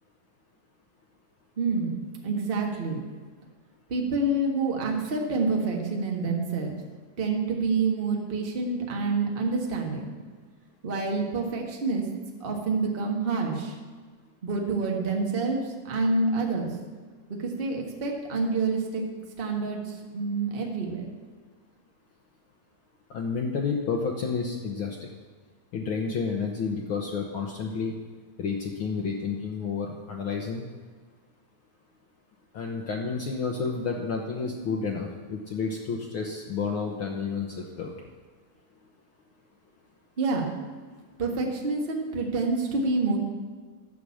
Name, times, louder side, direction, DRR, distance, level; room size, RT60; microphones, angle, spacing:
voice 1, 1.6-3.0 3.9-6.7 7.2-10.1 10.8-12.0 12.4-13.8 14.4-16.7 17.3-19.0 19.4-21.0 40.2-40.4 41.2-43.2, right 3 dB, 35° right, 0 dB, 0.9 m, -27 dB
voice 2, 23.1-25.1 25.7-27.9 28.4-30.7 32.5-37.9, left 5 dB, 80° left, 1 dB, 1.1 m, -30 dB
11.5 x 6.2 x 8.5 m, 1.5 s
omnidirectional pair, 3.6 m